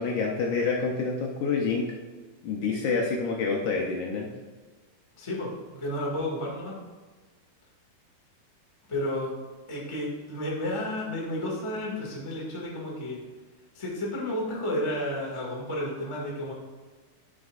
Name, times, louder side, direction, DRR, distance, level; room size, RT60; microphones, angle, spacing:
voice 1, 0.0-1.9 2.4-4.3, left 4 dB, 75° left, -1 dB, 1.9 m, -27 dB
voice 2, 5.1-6.7 8.9-9.3 9.7-13.2 13.7-16.5, left 1 dB, 30° left, -4 dB, 0.5 m, -32 dB
11.5 x 6.3 x 2.5 m, 1.3 s
omnidirectional pair, 4.3 m